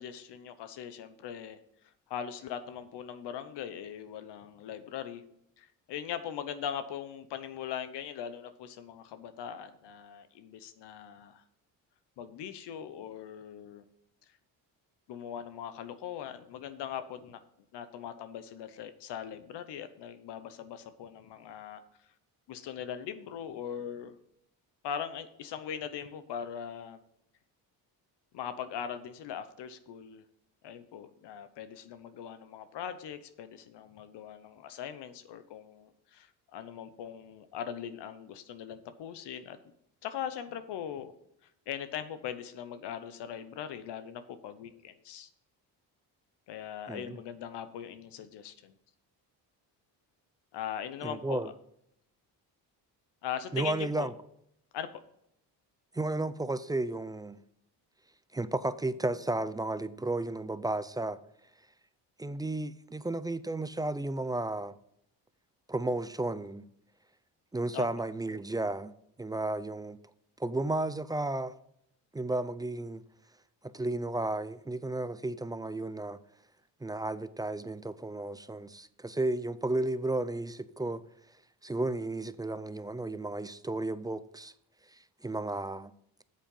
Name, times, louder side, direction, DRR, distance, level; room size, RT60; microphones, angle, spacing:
voice 1, 0.0-1.6 2.1-5.2 5.6-11.4 12.2-13.9 15.1-17.4 17.7-21.8 22.5-24.1 24.8-27.0 28.3-30.2 30.6-39.6 40.0-41.1 41.7-45.3 46.5-48.7 50.5-51.4 53.2-54.1 54.7-54.9 67.7-67.9, left 9 dB, 70° left, 1.0 m, -40 dB
voice 2, 46.9-47.2 51.0-51.5 53.5-54.1 55.9-57.4 58.3-61.2 62.2-64.7 65.7-66.6 67.5-68.9 69.2-70.0 70.4-71.5 72.1-73.0 73.6-76.2 76.8-81.0 81.6-84.5 84.9-85.9, right 2 dB, 10° right, 0.3 m, -33 dB
8.7 x 7.5 x 5.5 m
cardioid pair, 95°, 43 cm